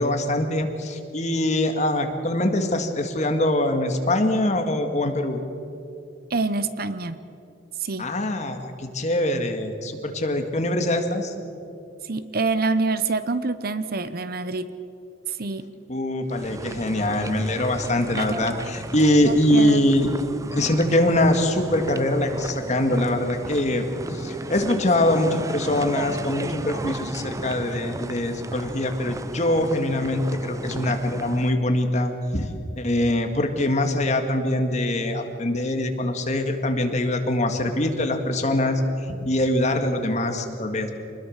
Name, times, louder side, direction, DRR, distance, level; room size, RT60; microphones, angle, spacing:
voice 1, 0.0-5.4 8.0-11.3 15.9-20.1 20.5-23.8 24.1-32.5 32.8-40.9, left 1 dB, 40° left, 5 dB, 1.9 m, -23 dB
voice 2, 6.3-7.2 7.8-8.1 12.0-14.7 15.3-15.7 18.2-18.3 19.2-19.8, right 3 dB, 50° right, 13 dB, 0.9 m, -26 dB
sound 1, 16.3-31.5, right 2 dB, 15° right, 0.5 m, -35 dB
26.0 x 20.5 x 6.5 m, 2.7 s
head